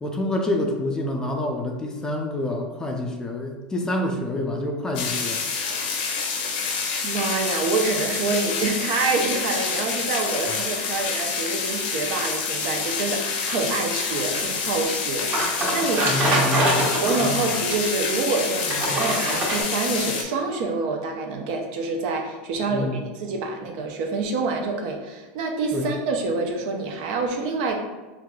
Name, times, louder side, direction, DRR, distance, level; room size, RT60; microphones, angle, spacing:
voice 1, 0.0-5.4 16.1-17.5 18.8-19.0 22.7-23.0 25.7-25.9, left 1 dB, 15° left, 1 dB, 0.4 m, -27 dB
sound 1, 4.9-20.2, left 5 dB, 75° left, 0.6 m, -27 dB
voice 2, 7.0-16.1 17.0-27.7, right 3 dB, 65° right, 2 dB, 0.6 m, -27 dB
sound 2, 14.9-17.9 18.7-19.6, right 1 dB, 30° right, 1.1 m, -24 dB
4.5 x 2.5 x 2.3 m, 1.2 s
supercardioid pair, 130°, 5 cm